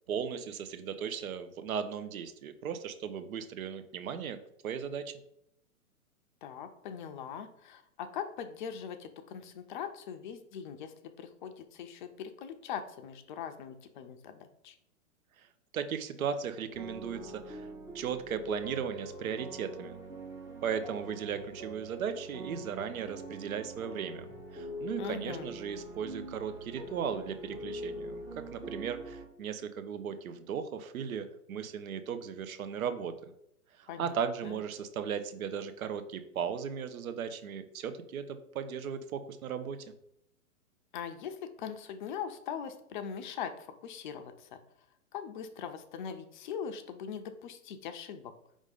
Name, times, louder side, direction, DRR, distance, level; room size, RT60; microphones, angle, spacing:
voice 1, 0.1-4.4 4.6-5.1 15.4-15.5 15.7-17.7 17.9-20.0 20.6-28.2 28.5-33.1 33.8-39.9, right 7 dB, 65° right, 10 dB, 0.8 m, -36 dB
voice 2, 6.4-14.8 25.0-25.5 33.9-34.2 34.4-34.6 40.9-44.6 45.1-48.3, left 7 dB, 35° left, 8 dB, 0.5 m, -41 dB
sound 1, 16.7-29.3, right 1 dB, 10° right, 0.6 m, -44 dB
5.1 x 3.6 x 5.1 m, 0.75 s
hypercardioid pair, 120°, 44 cm